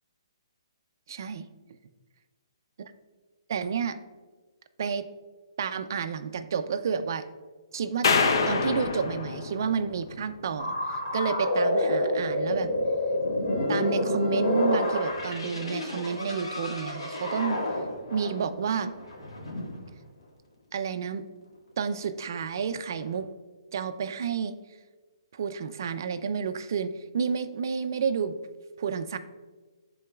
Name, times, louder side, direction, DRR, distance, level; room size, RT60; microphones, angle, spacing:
voice 1, 1.1-1.5 3.5-4.0 4.8-5.0 5.6-7.3 7.7-8.1 8.5-12.7 13.7-17.6 18.1-18.9 20.7-21.3 21.8-23.3 23.7-24.5 25.3-28.4 28.8-29.2, right 6 dB, 40° right, 10 dB, 0.3 m, -30 dB
sound 1, 8.0-10.4, left 4 dB, 50° left, 0.5 m, -26 dB
sound 2, 10.6-19.9 22.9-23.2, left 1 dB, 90° left, 1.6 m, -28 dB
11.0 x 3.8 x 2.3 m, 1.3 s
hypercardioid pair, 175°, 3 cm